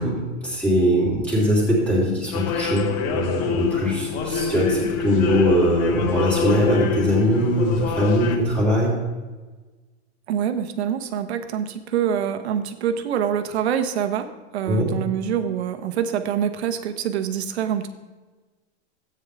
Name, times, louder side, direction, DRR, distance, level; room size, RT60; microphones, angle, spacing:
voice 1, 0.0-9.0 14.7-14.9, equal, 5° left, -5 dB, 3.1 m, -21 dB
sound 1, 2.3-8.4, left 5 dB, 30° left, 0.9 m, -26 dB
voice 2, 10.3-14.3 14.5-17.9, right 9 dB, 75° right, 9 dB, 1.1 m, -25 dB
13.5 x 9.0 x 3.5 m, 1.3 s
supercardioid pair, 160°, 33 cm